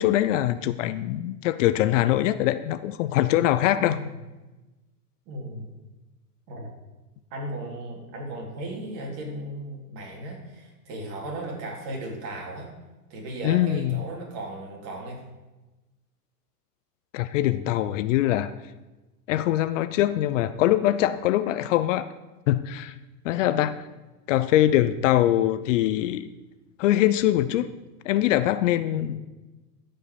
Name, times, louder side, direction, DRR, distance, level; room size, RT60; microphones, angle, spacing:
voice 1, 0.0-4.0 13.4-14.0 17.1-18.5 19.3-22.1 22.5-22.9 23.2-23.8 24.3-26.3 26.8-27.7 28.0-29.2, left 13 dB, 50° left, 13 dB, 0.6 m, -23 dB
voice 2, 3.7-4.1 5.3-5.7 6.5-6.7 7.3-12.7 13.1-15.2 23.4-23.5 28.9-29.2, right 1 dB, 45° right, -1 dB, 3.8 m, -36 dB
13.5 x 5.6 x 6.9 m, 1.1 s
hypercardioid pair, 120°, 48 cm